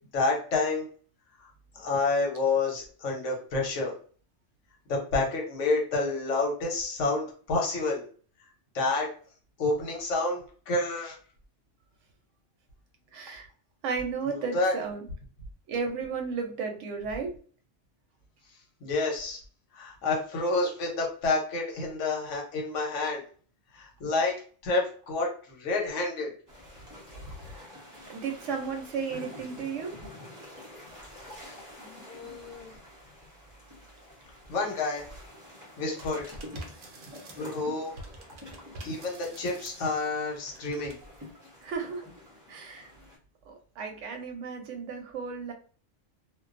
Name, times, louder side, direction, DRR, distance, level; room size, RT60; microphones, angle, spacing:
voice 1, 0.1-0.8 1.7-3.9 4.9-8.0 8.7-9.1 9.6-11.2 14.2-14.8 18.8-19.4 19.7-23.2 23.7-24.3 24.6-26.3 31.4-31.6 31.8-32.7 34.5-35.0 35.8-36.2 37.3-37.9 38.8-40.9, left 3 dB, 85° left, 0 dB, 1.2 m, -29 dB
voice 2, 13.1-13.5 13.8-15.1 15.7-17.3 27.5-27.7 28.1-30.0 41.6-42.0 42.5-42.9 43.5-45.5, right 5 dB, 85° right, 4 dB, 0.9 m, -34 dB
sound 1, 26.5-43.2, left 1 dB, 20° right, 0.6 m, -48 dB
sound 2, 36.0-37.7 38.0-40.1 40.5-40.9, right 2 dB, 55° right, 0.6 m, -46 dB
2.4 x 2.2 x 2.4 m, 0.42 s
omnidirectional pair, 1.2 m